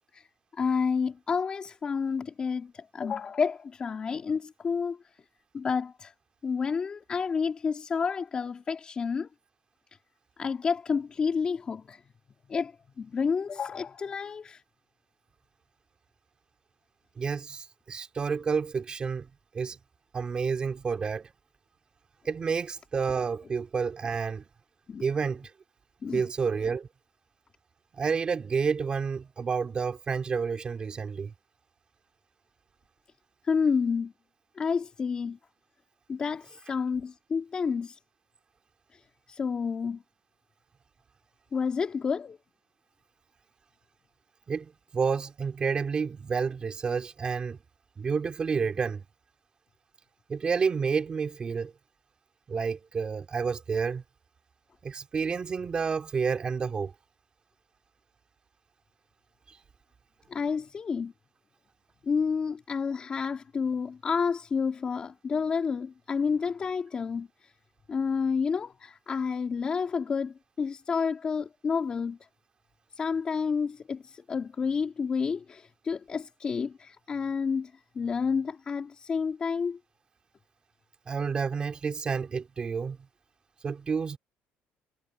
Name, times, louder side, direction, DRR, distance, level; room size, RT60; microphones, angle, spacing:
voice 1, 0.5-5.0 5.5-6.1 6.4-9.3 10.4-12.0 12.5-14.6 24.9-25.0 26.0-26.2 33.4-34.1 34.6-35.4 36.1-38.0 38.9-39.0 39.3-40.0 41.5-42.4 60.3-61.1 62.0-67.5 67.9-72.2 72.9-79.8, left 5 dB, 25° left, 3.1 m, -30 dB
voice 2, 17.2-19.3 19.5-19.8 20.1-21.3 22.2-24.5 25.0-25.5 26.1-26.9 28.0-31.3 44.5-47.6 48.0-49.0 50.3-51.7 52.5-54.0 54.8-56.9 59.5-59.6 81.1-83.0 83.6-84.2, right 5 dB, 25° right, 4.1 m, -30 dB
cardioid pair, 165°, 4 cm